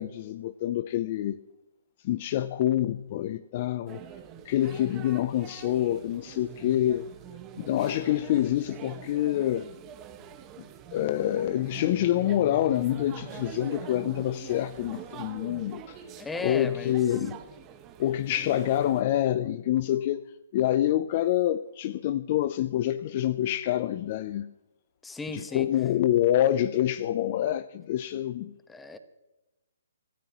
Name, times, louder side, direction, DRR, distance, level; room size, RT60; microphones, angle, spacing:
voice 1, 0.0-1.4 2.0-4.0 4.5-7.1 7.6-9.7 10.9-16.0 16.4-17.4 18.0-20.2 20.5-24.5 25.3-28.5, left 12 dB, 40° left, 0.5 m, -26 dB
sound 1, 3.9-19.0, right 9 dB, 20° right, 1.4 m, -44 dB
voice 2, 16.2-17.0 25.0-25.7 28.7-29.0, left 3 dB, 5° left, 1.1 m, -35 dB
26.5 x 13.5 x 3.0 m
hypercardioid pair, 150°, 0 cm